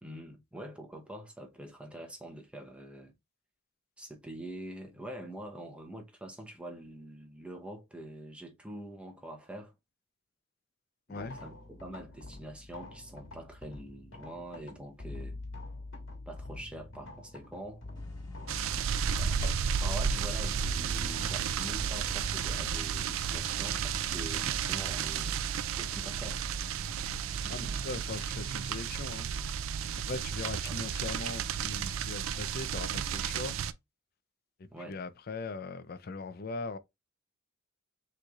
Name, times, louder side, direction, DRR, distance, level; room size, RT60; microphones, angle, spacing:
voice 1, 0.0-3.1 4.0-9.7 11.1-15.4 16.3-17.8 19.2-19.4 19.8-25.4 25.8-26.8 27.4-27.6 30.7-30.9 34.7-35.0, right 1 dB, 5° right, 0.8 m, -45 dB
sound 1, 11.2-25.4, left 2 dB, 75° left, 1.6 m, -47 dB
sound 2, 18.0-28.2, left 1 dB, 20° left, 1.8 m, -52 dB
sound 3, 18.5-33.7, right 7 dB, 80° right, 0.4 m, -33 dB
voice 2, 27.5-29.3 30.1-33.6 34.6-36.8, left 3 dB, 50° left, 0.5 m, -40 dB
6.5 x 3.1 x 2.4 m
head